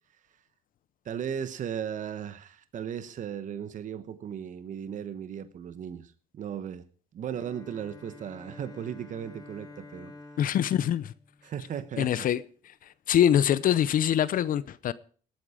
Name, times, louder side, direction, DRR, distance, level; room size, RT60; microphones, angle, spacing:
voice 1, 1.0-6.8 7.1-10.1 11.4-12.3, right 8 dB, 50° right, 1.0 m, -36 dB
Bowed string instrument, 7.3-12.2, left 3 dB, 25° left, 1.7 m, -50 dB
voice 2, 10.4-11.1 12.0-12.4 13.1-14.9, left 10 dB, 55° left, 0.7 m, -24 dB
19.0 x 8.9 x 5.0 m
cardioid pair, 110°, 17 cm